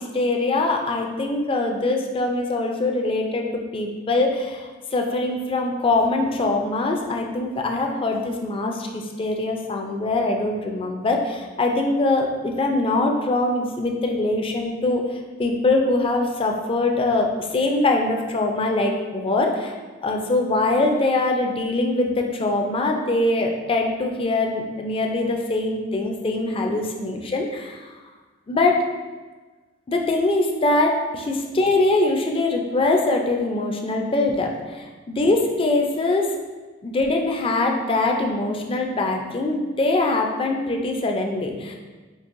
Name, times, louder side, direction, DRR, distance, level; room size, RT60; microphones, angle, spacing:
voice 1, 0.0-19.7 20.0-27.9 28.5-28.8 29.9-36.3 36.8-41.8, left 2 dB, 30° left, 2 dB, 0.4 m, -23 dB
5.3 x 2.9 x 2.5 m, 1.3 s
head